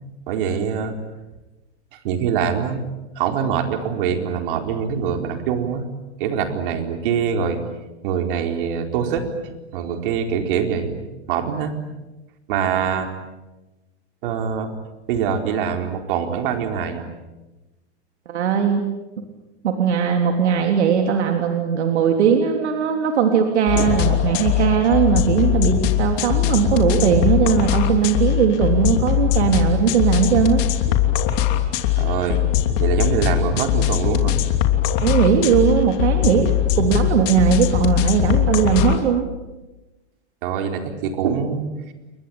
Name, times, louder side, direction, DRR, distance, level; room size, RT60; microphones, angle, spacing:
voice 1, 0.3-0.9 2.0-2.8 3.2-5.9 6.2-7.6 8.0-9.3 9.7-11.7 12.5-13.1 14.2-14.7 15.1-17.1 23.8-24.0 32.0-32.4 32.8-34.4 40.4-41.9, right 7 dB, 50° right, 5 dB, 4.3 m, -24 dB
voice 2, 18.3-18.8 19.6-30.6 35.0-36.5 36.8-39.3, right 7 dB, 80° right, 4 dB, 3.5 m, -19 dB
sound 1, 23.7-39.0, left 12 dB, 40° left, 3.1 m, -20 dB
29.5 x 23.0 x 8.8 m, 1.1 s
supercardioid pair, 160°, 34 cm